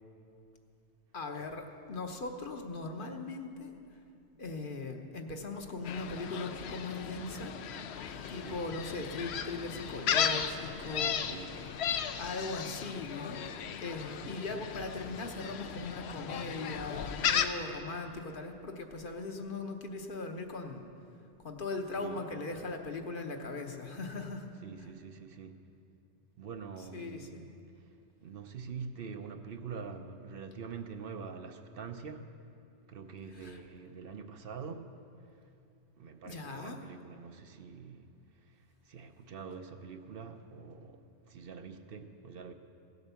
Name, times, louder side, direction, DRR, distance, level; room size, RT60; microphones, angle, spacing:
voice 1, 1.1-3.7 4.4-7.5 8.3-11.2 12.2-20.9 21.4-24.5 26.9-27.5 33.3-33.6 36.2-36.8, left 3 dB, 50° left, 1.1 m, -39 dB
Gull seagull, 5.9-17.5, left 8 dB, 70° left, 0.9 m, -35 dB
voice 2, 11.3-11.6 14.2-14.4 22.0-22.2 24.6-25.6 26.4-27.5 28.2-32.3 32.9-34.9 36.0-38.1 38.9-42.5, right 5 dB, 60° right, 0.9 m, -45 dB
16.5 x 8.1 x 7.0 m
omnidirectional pair, 1.2 m